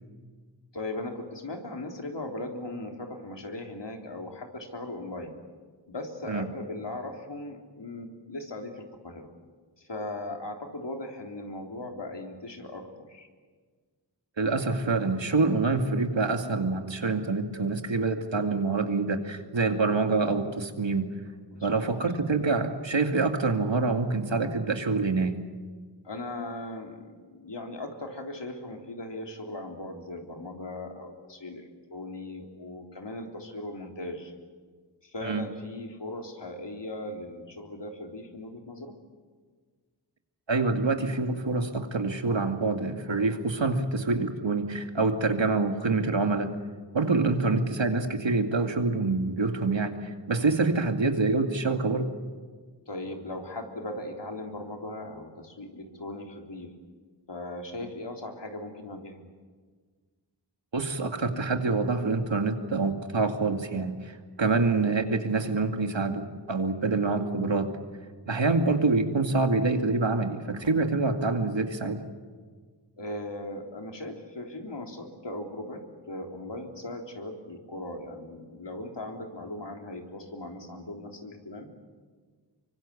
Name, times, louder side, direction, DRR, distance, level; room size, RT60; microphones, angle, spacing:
voice 1, 0.7-5.4 5.9-9.3 9.9-13.3 21.5-21.9 26.0-34.3 35.0-39.0 52.9-56.7 57.3-59.2 64.4-64.6 73.0-81.7, left 2 dB, 70° left, 3 dB, 3.6 m, -38 dB
voice 2, 14.4-21.1 21.6-25.4 35.2-35.5 40.5-46.5 46.9-52.1 60.7-63.9 64.4-67.7 68.3-72.0, right 3 dB, 80° right, 5 dB, 2.3 m, -26 dB
25.0 x 24.0 x 8.5 m, 1.5 s
wide cardioid pair, 50°, 44 cm